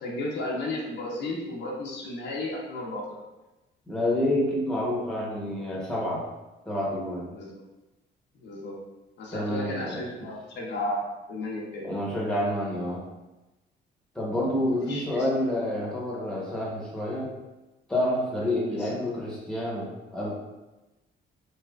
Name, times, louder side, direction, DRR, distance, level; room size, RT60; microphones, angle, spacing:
voice 1, 0.0-3.0 7.3-7.6 8.4-8.8 9.2-11.8 14.7-15.2 18.8-18.9, left 1 dB, 60° left, -3 dB, 0.7 m, -33 dB
voice 2, 3.9-6.2 6.7-7.3 9.3-10.0 11.8-13.0 14.1-17.3 17.9-20.3, left 1 dB, 5° left, -5 dB, 1.0 m, -28 dB
3.2 x 2.9 x 2.4 m, 1.1 s
cardioid pair, 90°, 20 cm